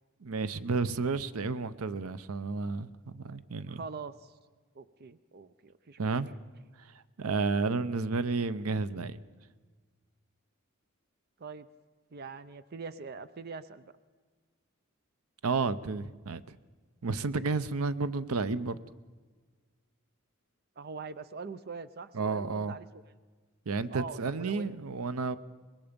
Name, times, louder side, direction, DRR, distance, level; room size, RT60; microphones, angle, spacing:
voice 1, 0.2-3.8 6.0-6.3 7.2-9.2 15.4-16.6 17.0-18.8 22.1-22.7 23.7-25.4, right 4 dB, 90° right, 15 dB, 0.7 m, -31 dB
voice 2, 3.7-4.4 4.8-6.1 7.6-7.9 11.4-11.7 12.1-14.0 20.8-22.9 23.9-24.7, right 4 dB, 45° right, 14 dB, 0.6 m, -43 dB
24.0 x 21.5 x 5.2 m, 1.4 s
head